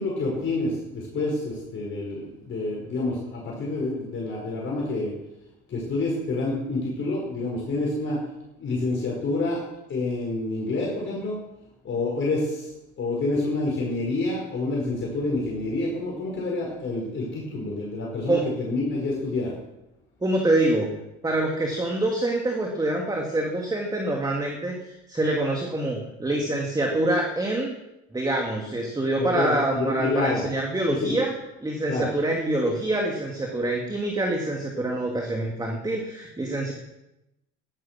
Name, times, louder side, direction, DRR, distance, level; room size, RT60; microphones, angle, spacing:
voice 1, 0.0-5.1 5.7-8.2 8.6-9.6 9.9-11.4 11.8-12.7 13.0-19.5 29.2-30.4 31.0-31.1 31.9-32.1, left 2 dB, 40° left, -3 dB, 5.4 m, -28 dB
voice 2, 20.2-20.9 21.2-27.7 28.1-31.3 31.6-36.7, right 1 dB, 15° right, 1 dB, 2.5 m, -26 dB
14.5 x 12.5 x 6.2 m, 0.90 s
cardioid pair, 110°, 30 cm